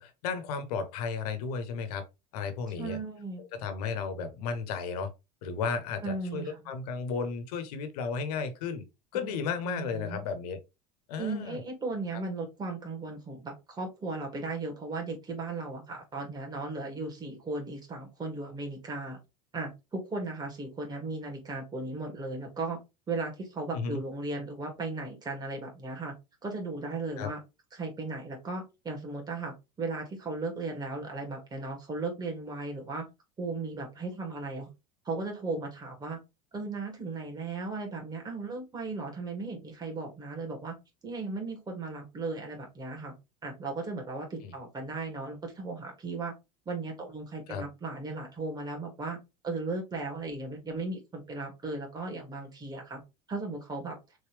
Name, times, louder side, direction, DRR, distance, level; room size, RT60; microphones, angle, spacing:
voice 1, 0.0-2.0 2.3-3.0 3.5-5.1 5.4-8.8 9.1-10.6 11.1-11.6 12.1-12.2 23.7-24.0 27.2-27.3 44.4-44.5 47.5-47.6, left 5 dB, 90° left, 1.2 m, -34 dB
voice 2, 2.8-3.4 6.0-6.6 9.2-9.3 9.6-10.2 11.2-19.2 19.5-22.8 23.1-26.1 26.4-27.4 27.7-33.1 33.4-34.7 35.0-36.2 36.5-40.8 41.0-43.1 43.4-46.3 46.7-49.2 49.4-53.0 53.3-54.0, right 3 dB, 20° right, 2.2 m, -36 dB
4.1 x 3.3 x 3.3 m
supercardioid pair, 120°, 19 cm